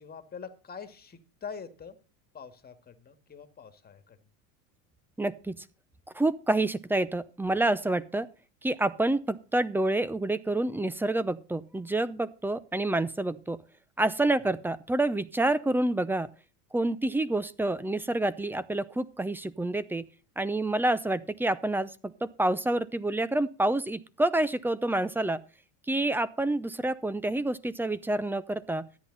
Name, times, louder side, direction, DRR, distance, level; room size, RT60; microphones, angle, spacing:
voice 1, 0.0-2.0 2.3-4.2 14.3-14.4, left 6 dB, 20° left, 8 dB, 2.0 m, -44 dB
voice 2, 5.2-5.6 6.1-8.3 8.6-13.6 14.0-16.3 16.7-20.1 20.4-25.4 25.9-28.9, right 2 dB, 5° right, 17 dB, 0.6 m, -28 dB
13.5 x 10.0 x 4.0 m, 0.34 s
supercardioid pair, 115°, 43 cm